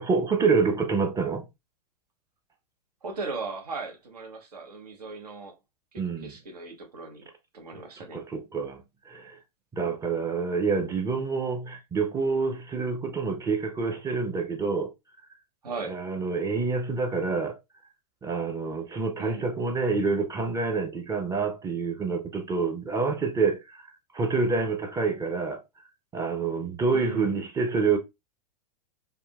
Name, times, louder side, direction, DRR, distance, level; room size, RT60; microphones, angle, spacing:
voice 1, 0.0-1.4 6.0-6.3 8.1-9.4 9.7-14.9 15.8-17.6 18.2-23.9 24.1-25.6 26.1-28.0, right 4 dB, 15° right, 0.5 m, -27 dB
voice 2, 3.0-5.5 5.9-7.3 7.5-8.2 15.6-16.0 19.2-19.5 26.9-27.4, right 4 dB, 80° right, 0.9 m, -38 dB
3.6 x 2.2 x 2.3 m
hypercardioid pair, 105°, 20 cm